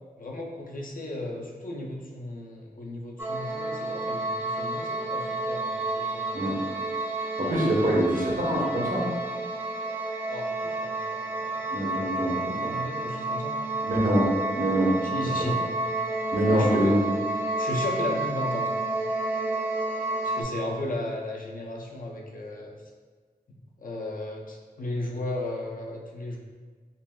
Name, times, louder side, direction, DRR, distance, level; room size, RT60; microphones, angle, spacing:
voice 1, 0.2-6.7 7.8-8.0 10.3-11.6 12.0-13.6 15.0-15.6 16.5-17.0 17.6-18.9 20.2-22.7 23.5-26.4, left 1 dB, 65° left, -1 dB, 0.4 m, -35 dB
sound 1, 3.2-20.4, right 2 dB, 15° right, 0.4 m, -30 dB
voice 2, 7.4-9.1 11.7-12.7 13.8-14.3 14.6-14.9 15.4-15.5 16.3-17.0, right 1 dB, 60° right, -4 dB, 0.8 m, -25 dB
3.8 x 2.2 x 2.2 m, 1.5 s
wide cardioid pair, 50°, 16 cm